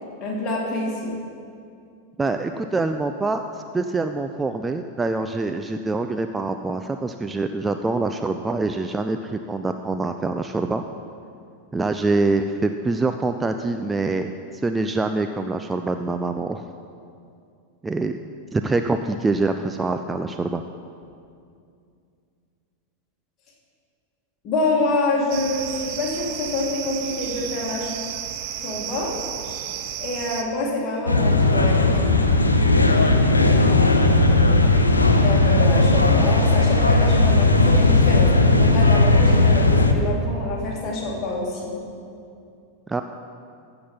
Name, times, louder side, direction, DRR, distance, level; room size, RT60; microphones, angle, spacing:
voice 1, 0.2-1.2 24.4-27.9 28.6-29.2 30.0-32.0 35.2-41.8, left 2 dB, 35° left, -2 dB, 2.3 m, -26 dB
voice 2, 2.2-3.4 3.7-10.8 11.7-14.3 14.6-16.7 17.8-18.2 18.5-20.6 42.9-43.0, right 3 dB, 10° right, 7 dB, 0.4 m, -25 dB
sound 1, 25.3-30.4, right 10 dB, 45° right, 0.7 m, -32 dB
sound 2, 31.1-39.9, left 2 dB, 80° left, 0.7 m, -17 dB
14.5 x 5.9 x 5.5 m, 2.4 s
figure-of-eight pair, 90°, 0 cm